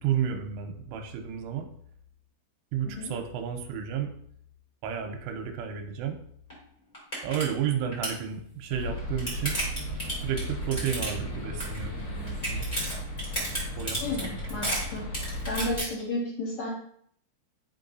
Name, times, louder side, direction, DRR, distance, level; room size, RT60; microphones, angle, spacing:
voice 1, 0.0-1.7 2.7-4.1 4.8-6.2 7.2-9.6 10.2-12.7 13.8-14.4, right 8 dB, 85° right, 4 dB, 3.2 m, -32 dB
sound 1, 6.5-6.6 6.9-7.4 7.7-8.2 8.8-11.3 11.6-12.0 12.3-15.8, right 1 dB, 30° left, 0.7 m, -32 dB
sound 2, 8.7-15.8, equal, 50° left, 4.1 m, -35 dB
voice 2, 14.0-15.0 15.5-16.7, left 2 dB, 75° left, -5 dB, 1.9 m, -32 dB
11.0 x 4.6 x 2.6 m, 0.64 s
omnidirectional pair, 5.7 m